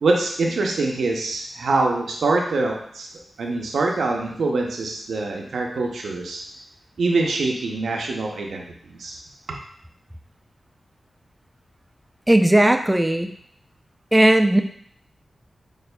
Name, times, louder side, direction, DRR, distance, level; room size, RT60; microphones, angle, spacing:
voice 1, 0.0-3.1 3.4-6.4 7.0-9.2, right 3 dB, 85° right, 0 dB, 0.6 m, -24 dB
voice 2, 12.3-13.3 14.1-14.6, right 1 dB, 15° right, 6 dB, 0.3 m, -16 dB
6.6 x 2.5 x 2.2 m, 0.64 s
cardioid pair, 45°, 0 cm